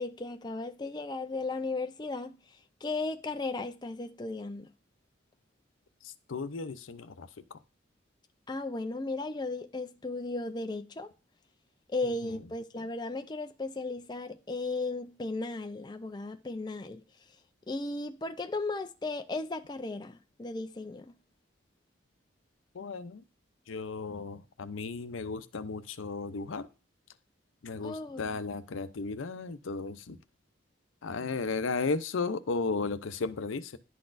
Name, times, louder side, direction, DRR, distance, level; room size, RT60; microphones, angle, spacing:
voice 1, 0.0-2.4 2.8-4.7 8.5-11.1 11.9-17.0 17.7-21.1 27.8-28.3, left 3 dB, 20° left, 0.4 m, -35 dB
voice 2, 6.0-7.6 12.0-12.4 22.7-23.2 23.7-26.7 27.6-30.2 31.0-33.8, left 4 dB, 85° left, 0.6 m, -35 dB
11.0 x 4.1 x 2.5 m
head